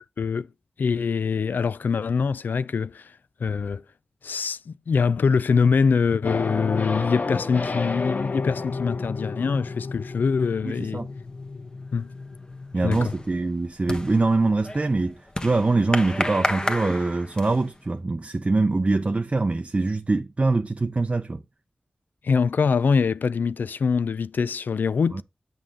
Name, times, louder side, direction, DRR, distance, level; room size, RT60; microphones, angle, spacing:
voice 1, 0.2-0.5 0.8-3.1 3.4-3.8 4.2-11.0 11.9-12.1 12.8-13.1 22.2-25.2, left 5 dB, 85° left, 0.3 m, -24 dB
sound 1, 6.2-13.2, left 3 dB, 60° left, 0.8 m, -31 dB
voice 2, 10.6-11.1 12.7-21.4 25.1-25.2, right 3 dB, 40° right, 0.5 m, -24 dB
sound 2, 11.3-11.6 12.0-17.8, left 1 dB, 25° left, 1.1 m, -32 dB
7.6 x 5.0 x 3.6 m
cardioid pair, 40°, 3 cm